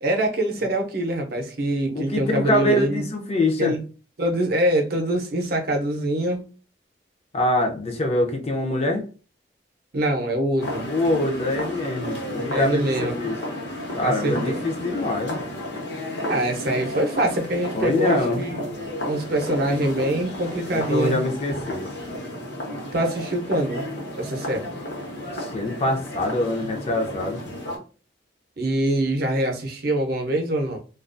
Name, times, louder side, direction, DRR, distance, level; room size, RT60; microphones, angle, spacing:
voice 1, 0.0-3.0 3.6-3.8 4.2-6.4 9.9-10.9 12.5-13.2 14.0-14.6 16.2-18.7 19.0-21.2 22.9-23.8 24.2-24.7 28.6-30.8, right 1 dB, 55° right, 0.6 m, -24 dB
voice 2, 1.9-3.7 7.3-9.1 10.8-13.4 13.9-15.4 17.7-18.4 20.7-21.9 25.3-27.4, left 1 dB, 35° left, 0.5 m, -24 dB
sound 1, 10.6-27.8, left 1 dB, 70° left, 0.8 m, -32 dB
2.3 x 2.2 x 2.5 m
head